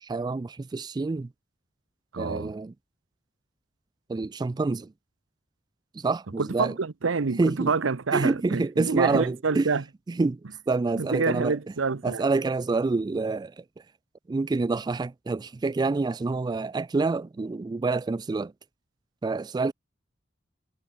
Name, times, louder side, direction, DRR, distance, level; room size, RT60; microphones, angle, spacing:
voice 1, 0.0-1.3 2.2-2.7 4.1-4.9 5.9-6.7 7.4-7.7 8.1-9.7 10.1-10.4 10.7-11.6 12.0-13.6 14.3-18.5 19.2-19.7, right 3 dB, 20° right, 0.3 m, -27 dB
voice 2, 2.1-2.5 6.4-9.8 11.0-12.2, right 4 dB, 90° right, 0.8 m, -27 dB
head